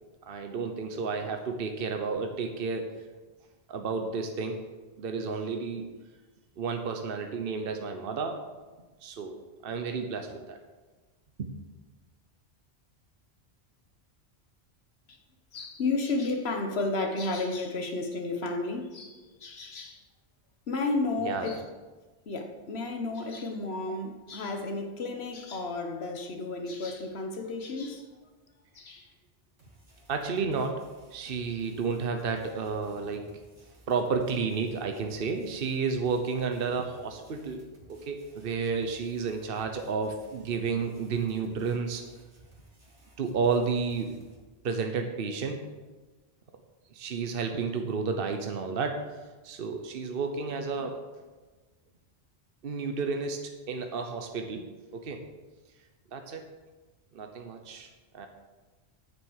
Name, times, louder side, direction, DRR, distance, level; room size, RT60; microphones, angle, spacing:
voice 1, 0.3-2.9 3.7-4.6 5.0-5.9 6.6-8.4 9.0-9.4 9.6-10.6 11.4-11.5 21.2-21.5 30.1-33.3 33.9-42.0 43.2-44.1 44.6-45.6 46.9-49.2 49.4-51.0 52.6-54.6 54.9-55.2 56.1-56.5 57.1-58.3, right 5 dB, 60° right, 1.0 m, -31 dB
voice 2, 15.5-20.0 20.7-21.6 22.3-28.1 28.7-29.1, left 3 dB, 70° left, 1.5 m, -32 dB
sound 1, 29.6-44.4, right 1 dB, 85° right, 2.6 m, -57 dB
9.7 x 7.4 x 6.4 m
omnidirectional pair, 1.1 m